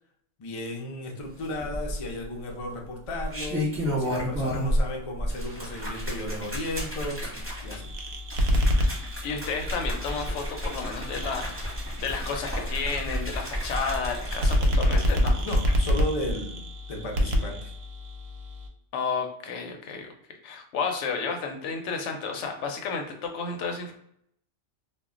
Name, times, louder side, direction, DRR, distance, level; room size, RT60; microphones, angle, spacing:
voice 1, 0.4-3.7 4.0-7.2 7.6-7.9 15.4-16.6 16.9-17.7, left 1 dB, 50° left, 1 dB, 0.4 m, -34 dB
sound 1, 1.6-2.2 3.1-4.9 5.2-15.8 16.2-16.3, equal, 10° right, 0.7 m, -32 dB
sound 2, 7.4-18.7, equal, 65° right, 0.7 m, -28 dB
voice 2, 9.0-15.5 18.9-20.1 20.4-23.9, left 5 dB, 75° left, 3 dB, 0.9 m, -32 dB
2.2 x 2.2 x 3.5 m, 0.70 s
omnidirectional pair, 1.3 m